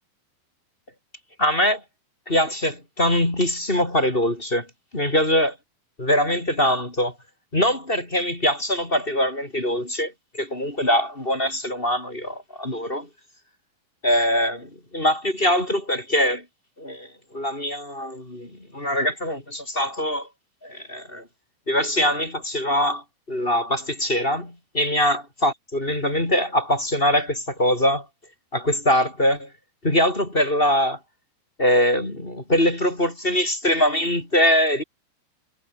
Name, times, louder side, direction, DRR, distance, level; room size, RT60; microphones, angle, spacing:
voice 1, 1.4-1.8 2.3-4.7 4.9-5.6 6.0-7.1 7.5-10.1 10.4-13.1 14.0-16.4 16.8-20.3 20.6-21.3 21.7-28.0 28.5-29.5 29.8-31.0 31.6-34.8, equal, 15° left, 3.3 m, -23 dB
omnidirectional pair, 5.3 m